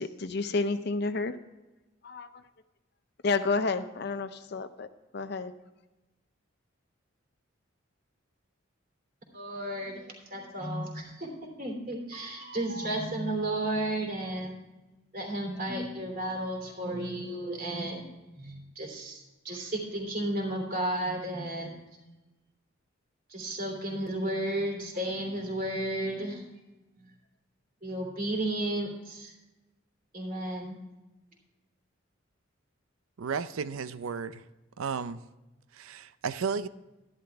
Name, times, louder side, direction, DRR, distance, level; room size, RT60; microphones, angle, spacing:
voice 1, 0.0-1.3 2.0-2.3 3.2-4.9 5.1-5.5, left 3 dB, 55° left, 0.6 m, -30 dB
voice 2, 9.3-10.0 10.3-14.5 15.1-18.1 18.4-21.8 23.3-26.5 27.8-29.3 30.1-30.8, right 1 dB, 45° right, 3.1 m, -33 dB
voice 3, 33.2-34.4 34.8-35.2 35.7-36.7, right 5 dB, 90° right, 0.5 m, -33 dB
12.5 x 11.0 x 3.5 m
head